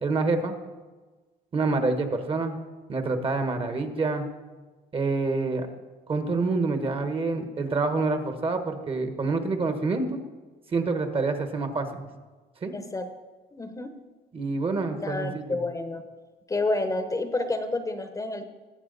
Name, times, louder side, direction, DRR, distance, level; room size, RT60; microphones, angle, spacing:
voice 1, 0.0-0.5 1.5-2.6 2.9-4.3 4.9-5.7 6.1-10.2 10.7-12.1 12.6-12.7 14.3-15.6, right 3 dB, 35° right, 7 dB, 1.3 m, -27 dB
voice 2, 12.7-13.1 13.5-13.9 15.0-16.0 16.5-18.4, left 2 dB, 20° left, 8 dB, 0.9 m, -29 dB
19.0 x 7.8 x 4.0 m, 1.3 s
cardioid pair, 110°, 17 cm